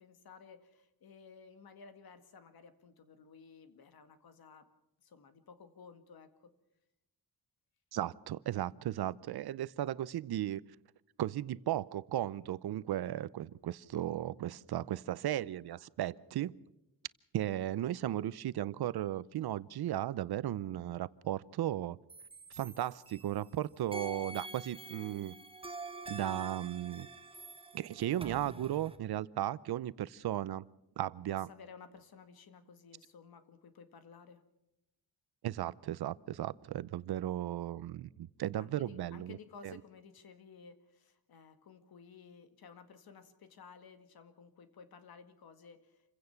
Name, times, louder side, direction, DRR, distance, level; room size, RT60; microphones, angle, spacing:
voice 1, 0.0-4.7 5.0-6.5 31.5-34.4 38.5-46.0, left 5 dB, 70° left, 1.9 m, -55 dB
voice 2, 7.9-10.6 11.2-16.5 17.3-22.0 22.5-25.3 26.1-27.1 27.7-30.6 31.0-31.5 35.4-39.4 39.6-39.8, right 12 dB, 80° right, 0.7 m, -36 dB
sound 1, 22.1-23.5 23.9-29.0, right 3 dB, 15° right, 1.3 m, -47 dB
28.0 x 16.0 x 5.8 m
wide cardioid pair, 175°, 37 cm